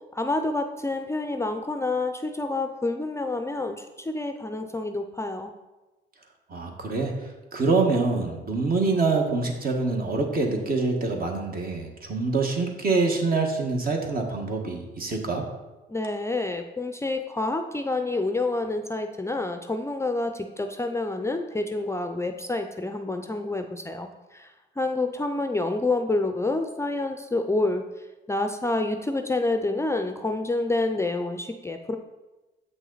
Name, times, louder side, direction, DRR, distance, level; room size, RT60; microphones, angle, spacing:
voice 1, 0.1-5.5 15.9-24.5 24.8-27.8 28.3-32.0, left 2 dB, 15° left, 6 dB, 0.5 m, -28 dB
voice 2, 6.5-7.1 7.5-15.4, right 3 dB, 45° right, 2 dB, 1.5 m, -25 dB
7.6 x 6.1 x 4.0 m, 1.1 s
cardioid pair, 90°, 20 cm